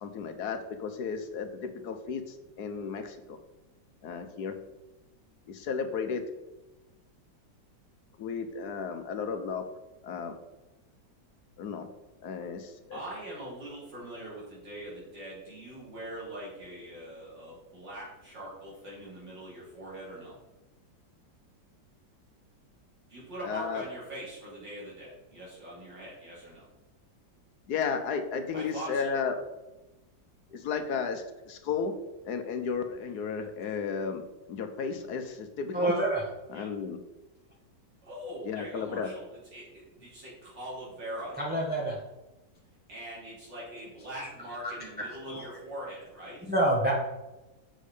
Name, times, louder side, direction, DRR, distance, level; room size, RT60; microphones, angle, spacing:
voice 1, 0.0-3.4 4.0-4.6 5.5-6.2 8.2-9.7 10.0-10.4 11.6-11.9 12.2-13.0 23.4-23.8 27.7-29.4 30.5-31.9 32.2-35.9 36.5-37.0 38.5-39.1, left 6 dB, 65° left, 7 dB, 1.3 m, -34 dB
voice 2, 12.9-20.4 23.1-26.7 28.5-29.1 36.5-36.7 38.0-41.4 42.9-46.5, right 1 dB, 80° right, -7 dB, 3.8 m, -42 dB
voice 3, 35.7-36.2 41.4-42.0 44.1-44.3 45.3-45.4 46.5-46.9, right 1 dB, 5° right, -4 dB, 1.2 m, -27 dB
7.4 x 6.4 x 5.0 m, 1.0 s
omnidirectional pair, 1.9 m